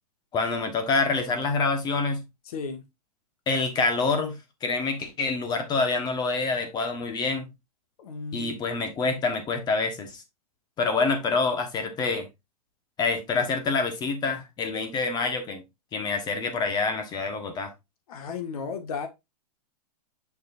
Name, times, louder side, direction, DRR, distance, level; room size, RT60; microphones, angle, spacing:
voice 1, 0.3-2.2 3.5-4.3 4.6-7.5 8.3-10.2 10.8-12.3 13.0-15.6 15.9-17.7, left 4 dB, 20° left, 1.3 m, -26 dB
voice 2, 2.5-2.8 8.0-8.5 18.1-19.1, left 5 dB, 65° left, 1.8 m, -34 dB
6.6 x 5.9 x 2.6 m
hypercardioid pair, 145°, 20 cm